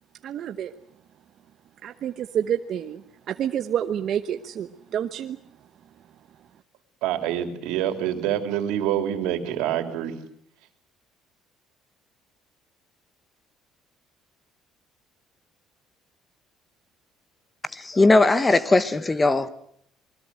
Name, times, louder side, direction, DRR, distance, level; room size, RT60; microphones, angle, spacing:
voice 1, 0.2-0.7 1.8-3.0 3.3-5.4, right 9 dB, 50° right, 1.0 m, -28 dB
voice 2, 7.0-10.1, right 11 dB, 90° right, 3.3 m, -26 dB
voice 3, 17.7-19.5, left 2 dB, 15° left, 1.1 m, -19 dB
27.5 x 21.0 x 7.7 m
cardioid pair, 135°, 0 cm